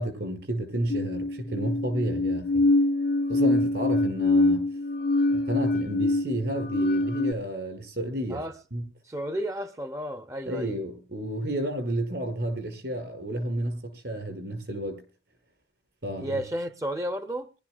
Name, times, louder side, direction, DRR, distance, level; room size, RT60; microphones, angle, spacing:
voice 1, 0.0-2.6 3.3-4.6 5.3-8.4 8.7-8.9 10.5-15.0 16.0-16.4, right 1 dB, 70° right, 5.7 m, -31 dB
sound 1, 0.9-7.3, left 2 dB, 60° left, 0.7 m, -24 dB
voice 2, 9.0-10.7 16.2-17.5, equal, 20° right, 0.7 m, -32 dB
23.5 x 12.5 x 2.3 m
head